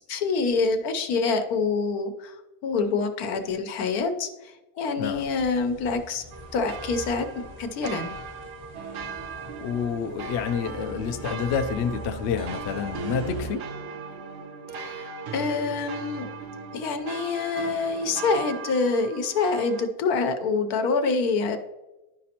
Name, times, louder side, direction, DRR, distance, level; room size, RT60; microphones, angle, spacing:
voice 1, 0.1-2.4 2.6-6.2 6.5-7.3 7.6-8.1 14.8-16.3 16.7-21.6, left 4 dB, 80° left, 7 dB, 1.2 m, -26 dB
sound 1, 5.0-13.5, left 1 dB, 30° left, 0.7 m, -42 dB
sound 2, 6.3-19.8, right 5 dB, 65° right, 0.6 m, -40 dB
sound 3, 8.7-18.6, right 6 dB, 90° right, 1.2 m, -40 dB
voice 2, 9.6-13.6, left 7 dB, 65° left, 7 dB, 0.7 m, -28 dB
11.5 x 5.1 x 2.8 m, 1.0 s
omnidirectional pair, 1.6 m